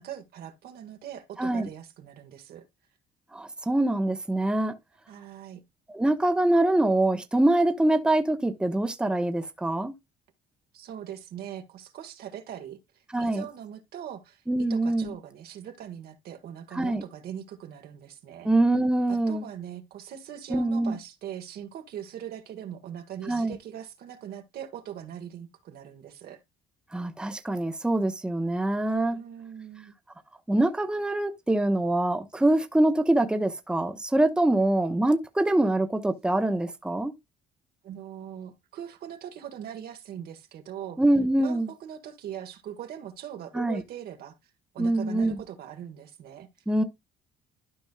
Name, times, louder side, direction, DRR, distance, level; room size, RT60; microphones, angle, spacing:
voice 1, 0.0-2.6 5.1-5.6 10.7-12.8 13.2-18.5 19.1-26.4 29.1-29.9 37.8-41.0 41.4-44.3 44.7-46.5, right 10 dB, 65° right, 1.5 m, -41 dB
voice 2, 3.3-4.7 5.9-9.9 13.1-13.4 14.5-15.1 16.7-17.0 18.4-19.4 20.5-21.0 23.3-23.6 26.9-29.2 30.5-37.1 41.0-41.7 43.5-43.8 44.8-45.4 46.7-46.8, right 1 dB, 5° right, 0.8 m, -24 dB
12.5 x 5.2 x 2.3 m
cardioid pair, 110°, 17 cm